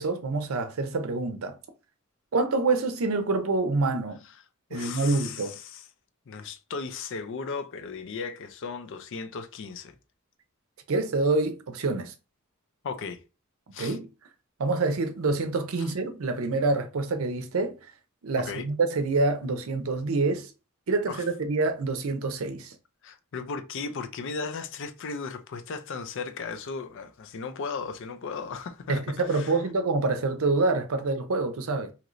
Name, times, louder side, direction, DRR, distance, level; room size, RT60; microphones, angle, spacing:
voice 1, 0.0-1.6 2.3-4.2 4.7-5.6 10.9-12.1 13.8-14.1 14.6-17.8 18.2-20.5 20.9-22.8 28.9-31.9, right 3 dB, 75° right, 0.5 m, -26 dB
voice 2, 4.7-5.8 6.3-9.9 12.8-13.2 13.7-14.0 15.8-15.9 18.5-18.7 21.1-21.2 23.0-29.5, left 5 dB, 65° left, 0.5 m, -36 dB
3.0 x 2.8 x 2.5 m
head